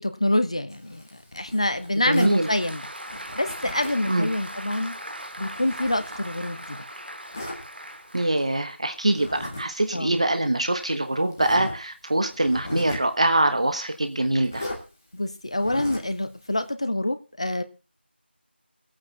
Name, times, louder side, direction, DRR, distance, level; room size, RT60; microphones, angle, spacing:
voice 1, 0.0-2.8 3.4-4.9 5.4-6.8 9.9-10.2 15.1-17.6, left 1 dB, 30° left, 11 dB, 1.2 m, -26 dB
Zipper (clothing), 0.7-2.4 3.1-4.1 4.5-6.7 7.3-7.6 9.1-9.7 9.9-10.1 10.8-10.9 11.3-11.8 12.3-13.1 14.4-14.8 15.5-16.2, left 1 dB, 15° left, 1.7 m, -38 dB
Applause, 1.8-8.9, right 1 dB, 60° right, 2.7 m, -39 dB
voice 2, 2.1-2.5 4.1-4.3 8.1-14.6, right 1 dB, 35° right, 8 dB, 1.3 m, -23 dB
17.5 x 9.0 x 5.6 m, 0.33 s
figure-of-eight pair, 175°, 6 cm